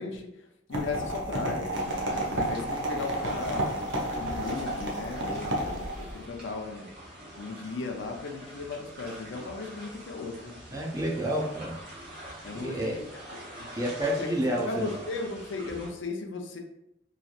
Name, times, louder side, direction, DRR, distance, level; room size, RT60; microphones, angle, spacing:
voice 1, 0.0-6.9 7.3-10.6 12.4-13.2 13.6-13.7 14.2-14.3 14.7-16.6, left 3 dB, 80° left, 3 dB, 0.5 m, -36 dB
sound 1, 0.7-6.2, right 1 dB, 80° right, 0.7 m, -31 dB
sound 2, 1.7-15.9, equal, 55° right, 1.0 m, -45 dB
voice 2, 10.7-11.8 12.5-12.9 13.7-14.9, right 1 dB, 20° right, -3 dB, 0.6 m, -29 dB
3.1 x 2.6 x 2.4 m, 0.83 s
head